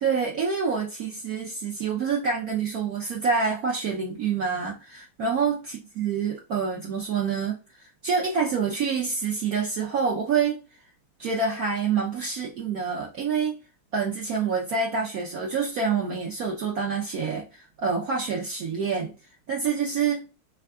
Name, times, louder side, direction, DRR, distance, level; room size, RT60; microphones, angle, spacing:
voice 1, 0.0-10.6 11.2-13.6 13.9-19.1 19.5-20.2, right 5 dB, 80° right, 0.8 m, -27 dB
3.5 x 3.4 x 2.3 m
omnidirectional pair, 2.4 m